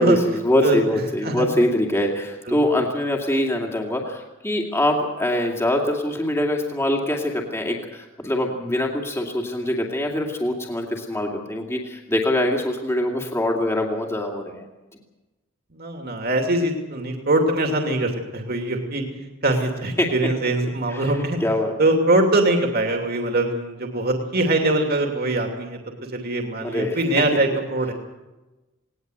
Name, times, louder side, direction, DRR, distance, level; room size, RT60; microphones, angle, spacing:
voice 1, 0.0-14.7 20.0-20.1 20.9-21.1 21.4-21.7 26.6-27.0, left 1 dB, 15° left, 1 dB, 2.5 m, -23 dB
voice 2, 15.7-19.0 19.4-21.4 21.8-25.8 26.1-27.9, right 2 dB, 50° right, 3 dB, 2.7 m, -22 dB
19.5 x 19.0 x 8.1 m, 1.1 s
head